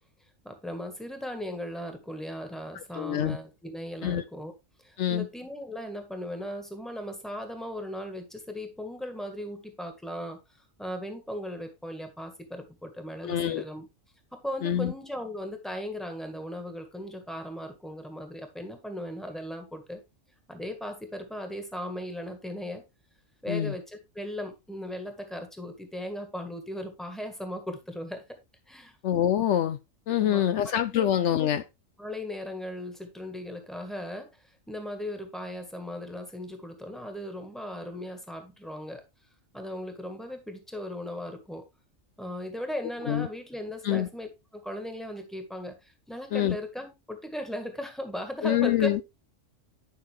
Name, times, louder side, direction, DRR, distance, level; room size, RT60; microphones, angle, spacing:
voice 1, 0.4-4.5 4.8-10.4 10.8-13.9 14.3-20.0 20.5-22.8 23.4-28.2 28.7-29.0 30.2-31.1 32.0-39.0 39.5-41.6 42.2-49.0, equal, ahead, 1.6 m, -37 dB
voice 2, 2.9-3.4 4.0-4.2 5.0-5.3 13.2-13.6 14.6-14.9 23.5-23.7 29.0-29.8 30.1-31.6 43.1-43.3 43.8-44.1 46.3-46.6 48.4-49.0, left 10 dB, 70° left, 0.9 m, -25 dB
10.5 x 5.7 x 3.4 m
omnidirectional pair, 1.3 m